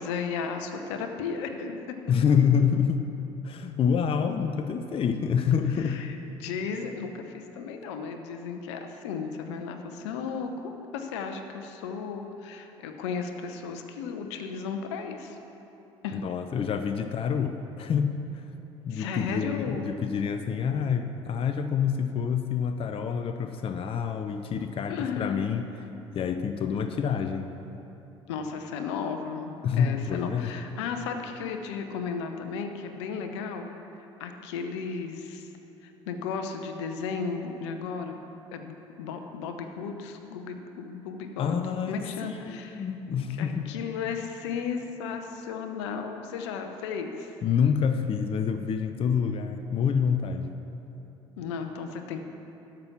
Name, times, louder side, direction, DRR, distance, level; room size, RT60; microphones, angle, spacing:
voice 1, 0.0-2.2 5.8-15.4 16.0-16.2 18.9-19.9 24.9-25.5 28.3-33.7 34.2-35.5 35.8-38.2 38.5-41.6 41.9-47.4 51.4-52.2, left 5 dB, 70° left, 6 dB, 0.8 m, -35 dB
voice 2, 2.1-3.1 3.4-6.0 16.1-18.4 18.8-25.7 26.1-27.5 29.6-30.5 41.4-43.7 47.4-50.5, left 7 dB, 40° left, 8 dB, 0.6 m, -27 dB
12.5 x 6.1 x 5.9 m, 3.0 s
figure-of-eight pair, 55°, 15 cm